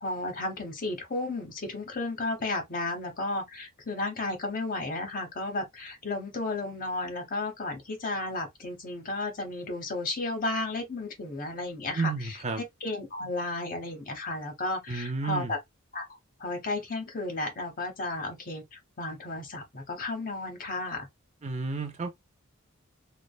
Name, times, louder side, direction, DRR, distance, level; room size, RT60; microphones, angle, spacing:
voice 1, 0.0-15.6 15.9-16.1 16.4-21.1, left 2 dB, 40° left, 0.8 m, -33 dB
voice 2, 11.9-12.6 14.9-15.5 21.4-22.1, right 4 dB, 30° right, 0.5 m, -31 dB
3.2 x 2.0 x 2.2 m
head